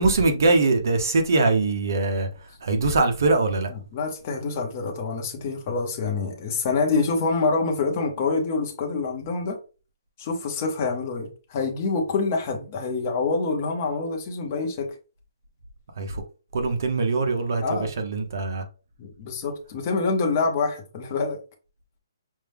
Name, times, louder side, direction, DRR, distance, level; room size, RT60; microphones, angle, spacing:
voice 1, 0.0-2.3 2.6-3.7 16.0-16.2 16.5-18.6, right 3 dB, 50° right, 1.0 m, -22 dB
voice 2, 3.9-9.6 10.2-14.9 17.6-17.9 19.0-21.4, left 4 dB, 25° left, 0.8 m, -26 dB
5.4 x 2.2 x 3.5 m
hypercardioid pair, 170°, 2 cm